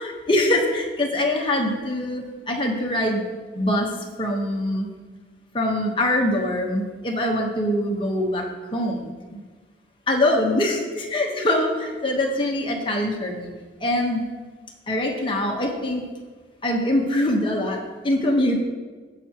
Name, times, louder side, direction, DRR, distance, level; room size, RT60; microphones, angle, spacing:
voice 1, 0.0-3.2 3.5-3.9 4.2-4.9 5.5-8.5 8.7-9.4 10.1-13.5 13.8-14.2 14.9-16.0 16.6-18.6, left 1 dB, 25° left, 1 dB, 1.2 m, -23 dB
17.0 x 5.9 x 3.0 m, 1.4 s
head